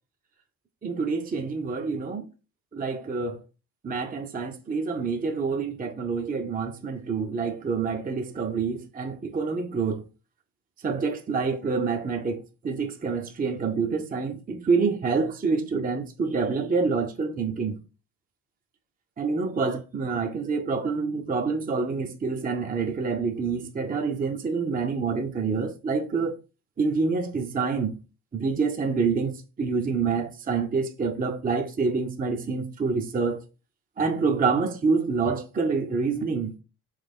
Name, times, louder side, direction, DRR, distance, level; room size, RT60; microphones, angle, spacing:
voice 1, 0.8-2.2 2.7-3.4 3.8-10.0 10.8-17.8 19.2-26.3 26.8-28.0 28.3-29.3 29.6-33.4 34.0-36.5, right 4 dB, 20° right, 0.6 m, -27 dB
3.4 x 3.3 x 3.5 m
hypercardioid pair, 60°, 47 cm